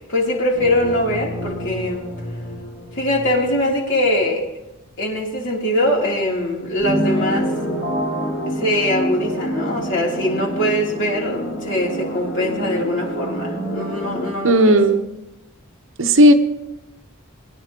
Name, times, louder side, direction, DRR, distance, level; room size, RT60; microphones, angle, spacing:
voice 1, 0.0-2.1 3.0-4.4 5.0-7.5 8.6-14.8, left 1 dB, 60° left, -2 dB, 3.0 m, -22 dB
sound 1, 0.5-3.8 4.2-4.3 6.8-14.3, right 1 dB, 75° left, 4.7 m, -27 dB
voice 2, 14.4-15.0 16.0-16.3, equal, 60° right, 7 dB, 0.9 m, -12 dB
21.0 x 10.5 x 2.9 m, 0.93 s
head